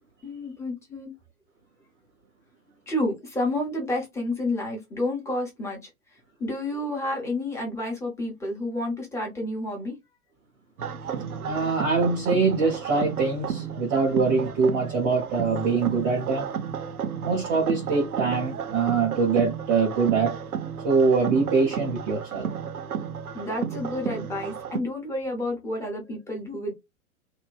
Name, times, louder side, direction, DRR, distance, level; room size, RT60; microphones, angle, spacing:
voice 1, 0.2-1.1 2.9-5.8 6.4-9.9 23.3-26.7, left 1 dB, 5° left, 0.8 m, -30 dB
sound 1, 10.8-24.8, right 7 dB, 80° right, 0.6 m, -33 dB
voice 2, 11.4-16.5 17.2-20.4 20.8-22.5, right 4 dB, 15° right, 0.4 m, -23 dB
2.9 x 2.2 x 2.3 m
figure-of-eight pair, 105°, 44 cm